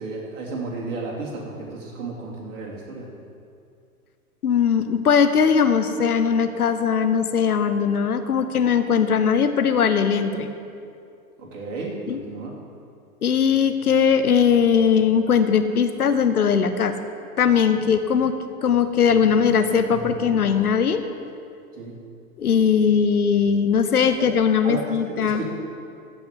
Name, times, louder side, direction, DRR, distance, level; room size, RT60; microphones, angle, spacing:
voice 1, 0.0-3.1 11.4-12.5 21.7-22.0 24.2-24.3 24.6-24.9 25.2-25.4, right 3 dB, 55° right, -3 dB, 3.2 m, -33 dB
voice 2, 4.4-10.5 12.1-12.2 13.2-16.9 17.4-18.3 18.6-21.0 22.4-25.4, left 7 dB, 75° left, 10 dB, 1.0 m, -20 dB
14.5 x 5.4 x 7.6 m, 2.5 s
figure-of-eight pair, 105°, 45 cm